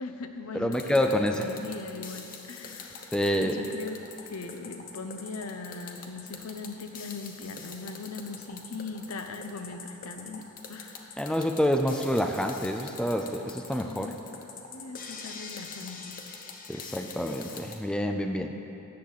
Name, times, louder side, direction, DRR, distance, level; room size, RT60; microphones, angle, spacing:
voice 1, 0.0-3.1 3.4-11.3 13.7-14.2 14.7-16.2 16.7-17.2, left 3 dB, 75° left, 6 dB, 0.7 m, -40 dB
voice 2, 0.5-1.5 3.1-3.6 11.2-14.1 16.7-18.5, equal, 5° left, 4 dB, 0.4 m, -27 dB
sound 1, 0.7-17.8, left 5 dB, 40° left, 0.8 m, -44 dB
13.5 x 8.6 x 4.0 m, 3.0 s
head